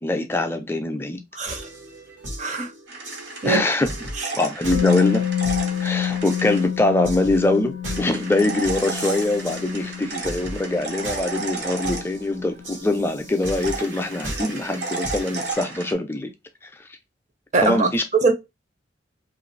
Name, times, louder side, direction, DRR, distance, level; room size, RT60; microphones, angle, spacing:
voice 1, 0.0-1.2 3.4-3.9 4.3-5.2 5.8-16.3 16.6-16.7 17.6-18.0, left 2 dB, 10° left, 0.4 m, -23 dB
voice 2, 1.3-1.7 2.4-2.7 3.4-3.6 4.2-4.3 17.5-18.3, right 4 dB, 40° right, 0.6 m, -22 dB
sound 1, 1.4-15.5, right 1 dB, 90° right, 1.3 m, -37 dB
sound 2, 2.9-6.7 7.9-12.5 13.4-15.9, right 3 dB, 60° right, 0.9 m, -33 dB
Musical instrument, 4.7-12.6 12.9-13.1, left 10 dB, 80° left, 0.3 m, -28 dB
2.7 x 2.4 x 3.2 m
head